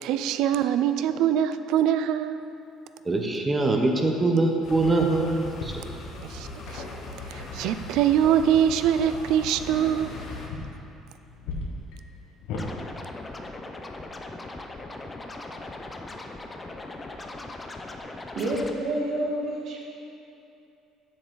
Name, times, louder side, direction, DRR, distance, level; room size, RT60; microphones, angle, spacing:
voice 1, 0.0-2.5 6.2-6.8 7.3-10.1 18.5-18.7 19.1-19.2, right 10 dB, 75° right, 11 dB, 0.3 m, -24 dB
voice 2, 3.0-5.8, right 2 dB, 20° right, 2 dB, 0.7 m, -23 dB
sound 1, 4.6-10.5, left 2 dB, 55° left, 1.1 m, -39 dB
sound 2, 5.5-12.7, left 3 dB, 75° left, 1.1 m, -41 dB
Scratching (performance technique), 12.5-18.7, left 2 dB, 20° left, 0.5 m, -39 dB
voice 3, 18.3-19.8, right 1 dB, 60° right, -3 dB, 1.6 m, -28 dB
7.6 x 6.9 x 3.9 m, 2.8 s
cardioid pair, 125°, 0 cm